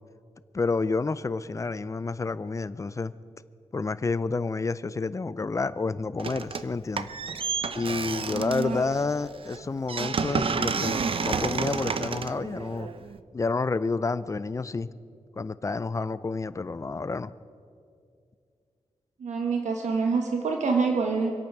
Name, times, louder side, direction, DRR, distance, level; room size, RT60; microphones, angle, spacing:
voice 1, 0.5-3.1 3.7-7.1 7.7-12.9 13.3-14.9 15.4-17.3, left 4 dB, 25° left, 16 dB, 0.5 m, -29 dB
sound 1, 6.2-6.7 7.0-13.2, right 5 dB, 50° right, 0.7 m, -30 dB
voice 2, 8.3-8.8 19.2-21.3, right 4 dB, 80° right, 3 dB, 1.2 m, -26 dB
26.0 x 8.8 x 6.0 m, 2.3 s
wide cardioid pair, 125°, 12 cm